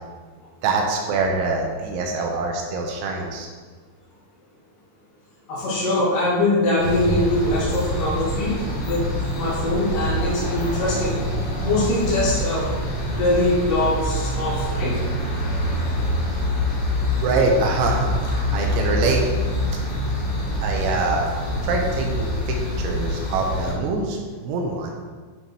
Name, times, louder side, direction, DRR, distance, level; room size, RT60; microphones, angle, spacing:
voice 1, 0.6-3.5 17.2-19.2 20.6-21.3 21.6-24.9, right 3 dB, 80° right, 1 dB, 3.2 m, -24 dB
voice 2, 5.5-9.1 9.3-11.2 11.6-12.7 13.0-15.0, left 2 dB, 45° left, -8 dB, 2.4 m, -23 dB
sound 1, 6.8-23.7, equal, 65° left, 1.4 m, -25 dB
9.9 x 5.7 x 4.5 m, 1.5 s
omnidirectional pair, 5.6 m